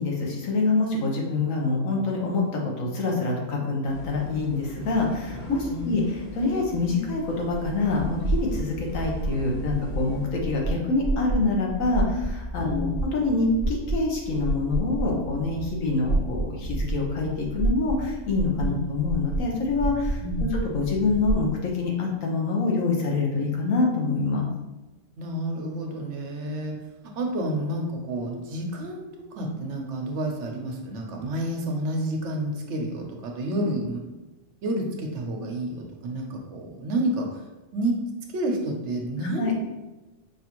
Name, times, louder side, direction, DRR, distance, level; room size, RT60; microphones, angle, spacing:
voice 1, 0.0-24.5 39.2-39.5, left 3 dB, 80° left, -1 dB, 1.3 m, -26 dB
sound 1, 3.8-10.3, equal, 40° left, 0.9 m, -42 dB
sound 2, 7.5-21.5, right 2 dB, 30° right, 0.6 m, -30 dB
voice 2, 12.6-13.0 18.6-18.8 20.2-20.5 25.2-26.7 27.2-34.0 34.6-37.4 37.7-37.9 38.3-39.5, right 1 dB, 65° right, 1 dB, 0.9 m, -29 dB
5.3 x 2.5 x 2.9 m, 1.1 s
omnidirectional pair, 1.4 m